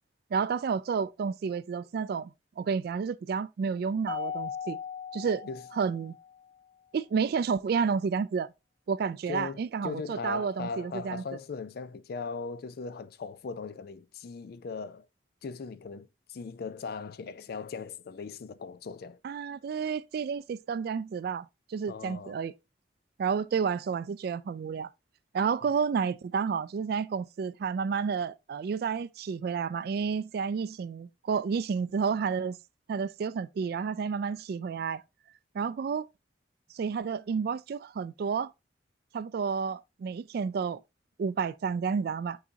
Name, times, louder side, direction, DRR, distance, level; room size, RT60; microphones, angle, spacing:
voice 1, 0.3-4.8 5.1-6.2 6.9-8.5 8.9-11.2 19.2-22.5 23.2-24.9 25.3-32.6 32.9-35.0 35.5-36.1 36.7-38.5 39.1-40.8 41.2-42.4, right 6 dB, 60° right, 0.3 m, -30 dB
Mallet percussion, 4.1-6.5, left 7 dB, 25° left, 0.7 m, -38 dB
voice 2, 9.3-15.1 15.4-19.2 21.9-22.4, left 5 dB, 60° left, 0.4 m, -39 dB
8.6 x 4.0 x 2.7 m
head